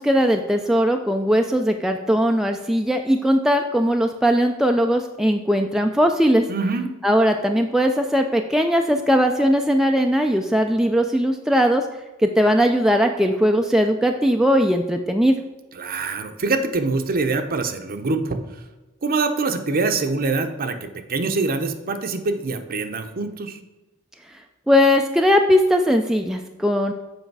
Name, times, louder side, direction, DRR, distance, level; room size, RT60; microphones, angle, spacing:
voice 1, 0.0-6.4 7.0-11.8 12.2-15.4 24.7-26.9, equal, ahead, 3 dB, 0.3 m, -19 dB
voice 2, 6.5-6.9 15.7-18.4 19.0-23.6, right 3 dB, 45° right, 8 dB, 0.7 m, -24 dB
7.9 x 5.0 x 4.6 m, 1.1 s
head